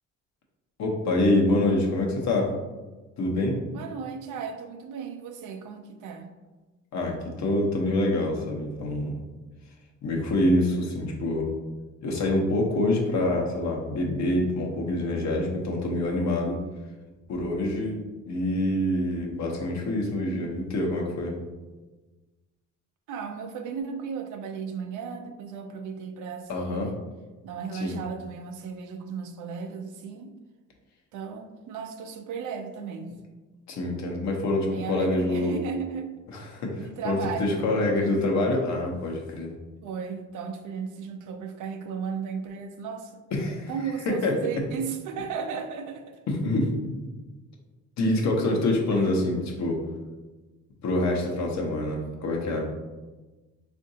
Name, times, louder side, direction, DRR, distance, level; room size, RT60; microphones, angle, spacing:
voice 1, 0.8-2.5 3.2-3.6 6.9-9.2 10.0-11.4 12.0-16.6 17.3-18.0 18.3-21.4 26.5-26.9 27.7-28.0 33.7-35.6 36.3-39.5 43.3-43.7 44.1-44.4 46.3-46.7 48.0-49.8 50.8-52.7, left 1 dB, 65° left, 0 dB, 0.8 m, -26 dB
voice 2, 3.7-6.3 23.1-27.0 27.4-30.4 31.1-33.2 34.6-36.1 36.8-38.2 39.8-43.2 43.7-46.2 48.9-49.1, right 6 dB, 80° right, 6 dB, 0.5 m, -35 dB
3.6 x 2.5 x 2.6 m, 1.2 s
cardioid pair, 90°, 30 cm